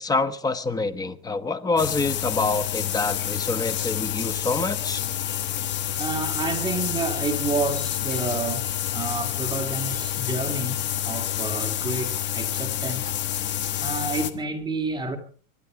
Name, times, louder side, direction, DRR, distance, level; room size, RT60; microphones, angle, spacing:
voice 1, 0.0-5.0, left 3 dB, 10° left, 1.0 m, -26 dB
sound 1, 1.8-14.3, left 11 dB, 25° left, 1.4 m, -28 dB
voice 2, 6.0-13.1 13.8-15.2, right 3 dB, 10° right, 2.4 m, -29 dB
24.5 x 11.0 x 4.8 m
hypercardioid pair, 130°, 41 cm